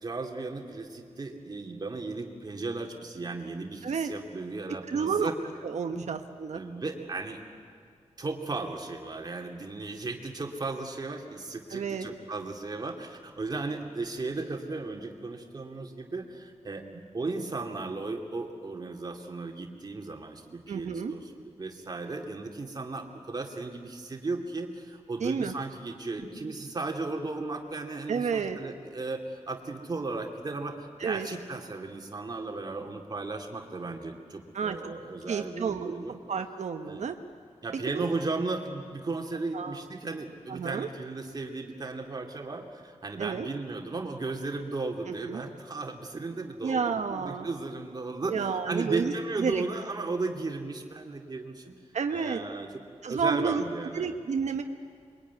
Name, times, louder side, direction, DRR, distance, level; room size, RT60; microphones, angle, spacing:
voice 1, 0.0-5.3 5.9-6.1 6.5-7.4 8.2-36.2 36.8-37.0 37.6-51.7 52.1-52.8 53.1-54.2, right 3 dB, 35° right, 2 dB, 2.6 m, -35 dB
voice 2, 4.9-5.3 5.6-6.6 11.7-12.1 20.7-21.1 25.2-25.5 28.1-28.6 31.0-31.3 34.5-34.9 35.3-36.0 36.3-37.2 37.9-38.0 39.5-39.8 40.5-40.9 43.2-43.5 45.1-45.4 46.6-47.5 48.3-49.1 49.4-49.6 51.9-52.4 53.0-53.6 53.9-54.6, right 6 dB, 70° right, 6 dB, 1.1 m, -30 dB
27.0 x 23.0 x 9.6 m, 2.1 s
wide cardioid pair, 160°, 12 cm